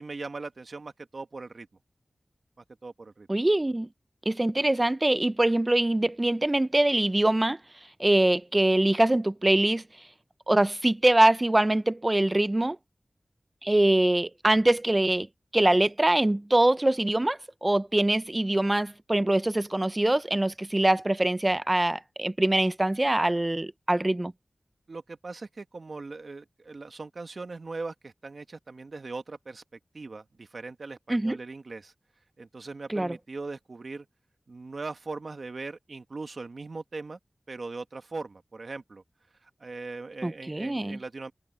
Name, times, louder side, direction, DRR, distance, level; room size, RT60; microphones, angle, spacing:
voice 1, 0.0-1.7 2.6-3.3 24.9-29.6 29.9-31.9 32.4-34.1 34.5-37.2 37.5-39.0 39.4-41.3, right 3 dB, 70° right, 1.8 m, -40 dB
voice 2, 3.3-3.9 4.3-7.6 8.0-9.8 10.5-12.8 13.6-15.3 15.5-24.3 31.1-31.4 32.9-33.2 40.2-41.0, right 1 dB, 30° right, 0.8 m, -23 dB
cardioid pair, 45°, 0 cm